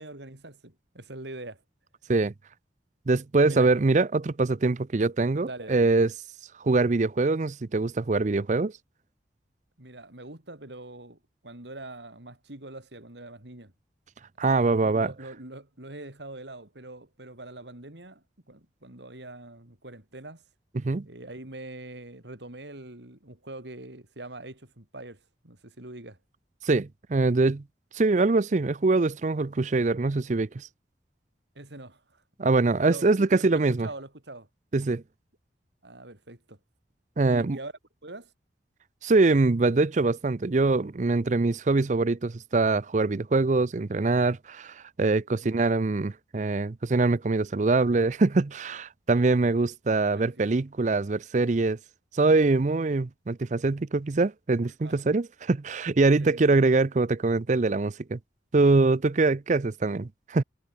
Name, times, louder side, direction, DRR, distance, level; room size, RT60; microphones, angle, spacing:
voice 1, 0.0-1.6 3.4-3.7 5.5-5.9 9.8-13.7 14.4-20.4 21.1-26.2 31.6-32.2 32.9-34.5 35.8-36.6 37.3-37.7 38.0-38.3 45.3-45.5 50.1-50.5 54.8-55.0 56.2-56.4, right 2 dB, 75° right, 3.8 m, -43 dB
voice 2, 3.1-6.1 6.6-8.7 14.4-15.1 20.8-21.1 26.6-27.6 27.9-30.7 32.4-33.9 34.7-35.0 37.2-37.6 39.0-51.8 52.1-58.2 58.5-60.4, right 3 dB, 40° right, 0.5 m, -23 dB
head